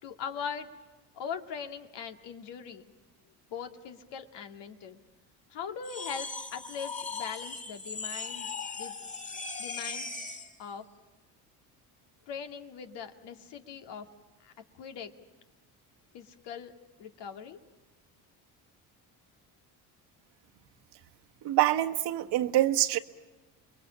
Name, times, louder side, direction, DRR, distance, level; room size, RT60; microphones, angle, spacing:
voice 1, 0.0-0.7 1.2-2.9 3.5-5.0 5.5-8.5 8.8-8.9 9.6-10.3 10.6-10.8 12.3-14.1 14.4-15.1 16.1-16.7 17.0-17.6, left 7 dB, 70° left, 6 dB, 2.4 m, -40 dB
sound 1, 5.8-10.6, left 4 dB, 15° left, 2.6 m, -38 dB
voice 2, 21.4-23.0, right 14 dB, 65° right, 6 dB, 1.5 m, -25 dB
29.0 x 22.0 x 8.7 m, 1.2 s
supercardioid pair, 80°, 44 cm